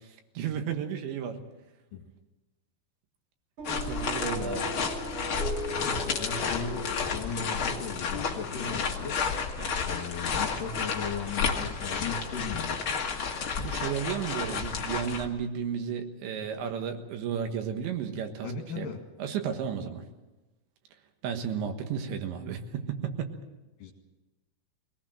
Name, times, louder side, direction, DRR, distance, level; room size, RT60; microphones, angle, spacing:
voice 1, 0.4-1.4 3.7-4.8 9.6-9.8 13.6-18.5 18.8-18.9 19.2-20.0 21.2-23.3, right 7 dB, 75° right, 5 dB, 3.7 m, -33 dB
sound 1, 3.6-15.3, left 5 dB, 80° left, 1.1 m, -31 dB
sound 2, 3.6-8.9, left 1 dB, 40° right, 2.5 m, -38 dB
voice 2, 5.7-9.2 9.8-12.8 18.4-19.0 23.8-23.9, left 5 dB, 55° left, 3 dB, 3.1 m, -37 dB
22.5 x 18.5 x 7.6 m, 1.1 s
omnidirectional pair, 5.3 m